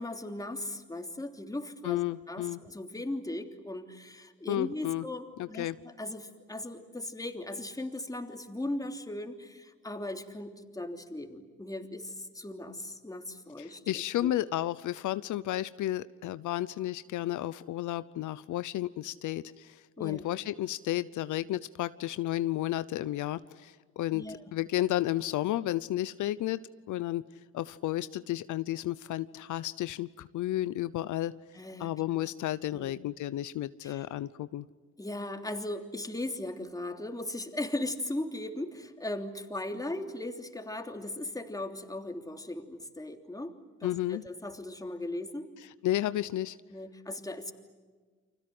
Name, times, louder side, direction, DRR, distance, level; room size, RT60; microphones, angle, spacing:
voice 1, 0.0-2.0 2.3-14.3 20.0-20.2 24.1-24.4 31.5-31.9 32.7-33.0 33.8-34.0 35.0-43.5 43.8-45.5 46.7-47.5, left 1 dB, 10° left, 5 dB, 3.2 m, -38 dB
voice 2, 1.8-2.6 4.5-5.0 5.4-5.8 13.6-24.3 24.5-26.6 26.9-27.2 27.5-31.3 31.8-34.7 43.8-44.2 45.8-46.6, left 14 dB, 80° left, 15 dB, 0.8 m, -32 dB
30.0 x 25.5 x 7.9 m, 1.4 s
cardioid pair, 90°, 30 cm